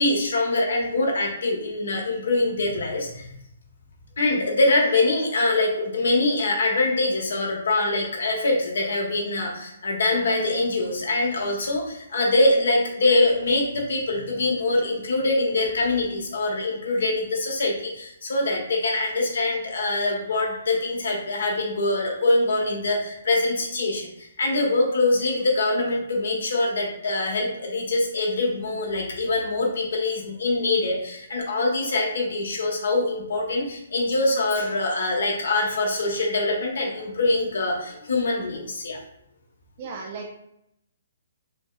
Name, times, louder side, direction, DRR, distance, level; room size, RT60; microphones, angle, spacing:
voice 1, 0.0-3.3 4.2-39.0, left 2 dB, 65° left, -1 dB, 1.1 m, -24 dB
voice 2, 39.8-40.3, right 4 dB, 30° right, 0 dB, 0.4 m, -35 dB
5.2 x 2.2 x 2.3 m, 0.77 s
hypercardioid pair, 175°, 0 cm